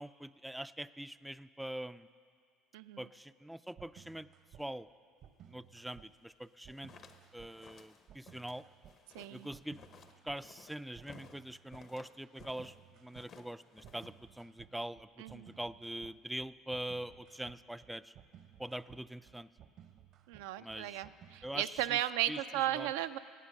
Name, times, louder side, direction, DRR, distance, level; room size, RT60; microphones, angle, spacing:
voice 1, 0.0-2.1 3.0-4.3 4.6-4.9 5.5-6.9 7.3-8.6 9.3-9.8 10.2-18.1 18.6-19.5 20.6-21.0 21.4-22.0 22.3-22.4 22.7-22.9, right 1 dB, 5° right, 14 dB, 0.3 m, -43 dB
voice 2, 2.7-3.1 9.1-9.5 15.2-15.5 20.3-23.2, right 13 dB, 85° right, 10 dB, 0.4 m, -35 dB
sound 1, 3.8-4.6 5.2-6.1 6.6-7.5 8.1-8.9 9.5-10.4 10.9-11.8 12.4-13.3 13.8-22.2, right 10 dB, 60° right, 0.8 m, -58 dB
sound 2, 6.5-12.8 13.1-14.3, left 6 dB, 50° left, 0.9 m, -58 dB
17.5 x 8.2 x 6.4 m, 2.2 s
supercardioid pair, 90°, 0 cm